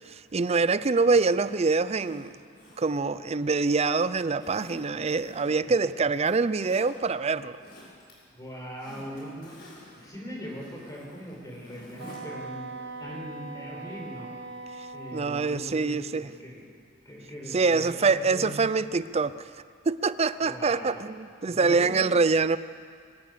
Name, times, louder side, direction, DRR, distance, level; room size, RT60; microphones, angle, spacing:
voice 1, 0.1-2.3 2.8-7.6 15.1-16.3 17.5-19.4 19.9-22.6, right 4 dB, 35° right, 15 dB, 0.5 m, -25 dB
Zipper (clothing), 1.9-3.8 4.4-5.8 6.1-6.9 7.4-8.1 8.4-12.2 12.5-12.6, equal, 55° left, 6.5 m, -51 dB
voice 2, 8.3-12.7 13.0-14.3 14.9-16.6 17.1-18.6 20.4-21.0 21.5-22.0, equal, 20° left, -1 dB, 5.1 m, -40 dB
Wind instrument woodwind instrument, 12.0-15.4, right 3 dB, 65° right, 1.3 m, -40 dB
23.5 x 18.0 x 6.9 m, 2.1 s
head